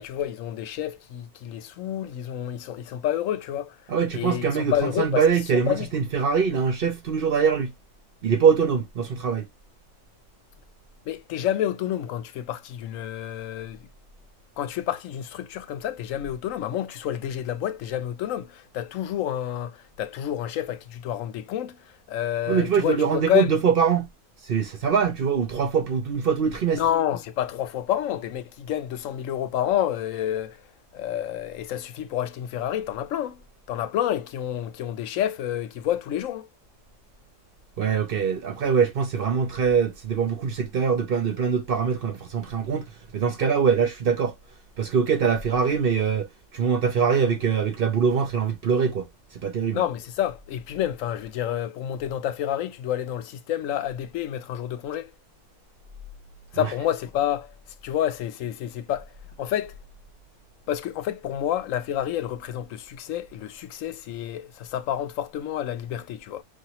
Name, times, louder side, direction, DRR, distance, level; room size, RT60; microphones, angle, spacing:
voice 1, 0.0-3.8 4.1-5.2 5.7-5.9 11.1-13.8 14.6-21.8 22.1-23.5 26.7-30.6 30.9-33.4 33.7-36.5 49.7-55.1 56.5-57.5 57.8-59.1 59.4-59.7 60.7-66.4, left 11 dB, 80° left, 1.0 m, -29 dB
voice 2, 3.9-7.7 8.2-9.5 22.5-24.1 24.4-26.9 37.8-42.9 43.1-44.3 44.8-46.3 46.5-49.1 49.4-49.9 56.5-56.7, right 6 dB, 55° right, 0.8 m, -23 dB
4.8 x 2.9 x 2.8 m
omnidirectional pair, 1.3 m